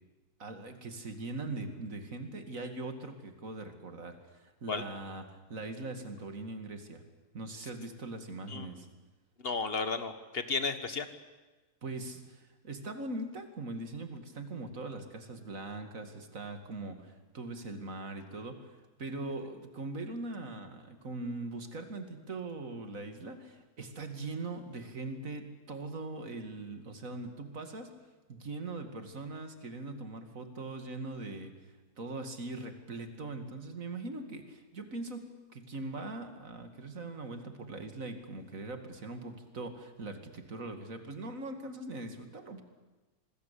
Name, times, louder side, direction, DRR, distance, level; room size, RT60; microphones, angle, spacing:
voice 1, 0.4-7.0 7.3-8.9 11.8-27.9 28.3-42.6, right 2 dB, 55° right, 7 dB, 2.6 m, -41 dB
voice 2, 9.4-11.1, left 4 dB, 40° left, 11 dB, 1.7 m, -33 dB
26.5 x 20.5 x 8.5 m, 1.2 s
omnidirectional pair, 1.7 m